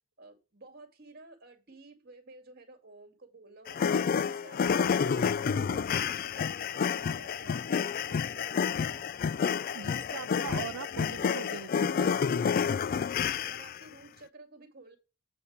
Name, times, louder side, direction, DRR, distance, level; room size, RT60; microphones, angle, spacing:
voice 1, 0.2-3.9 4.2-9.5 9.9-10.1 10.4-10.7 12.4-15.0, right 2 dB, 45° right, 2.3 m, -53 dB
sound 1, 3.7-13.8, left 6 dB, 45° left, 0.3 m, -29 dB
voice 2, 9.7-12.2, right 7 dB, 85° right, 0.5 m, -41 dB
8.3 x 5.3 x 5.0 m
head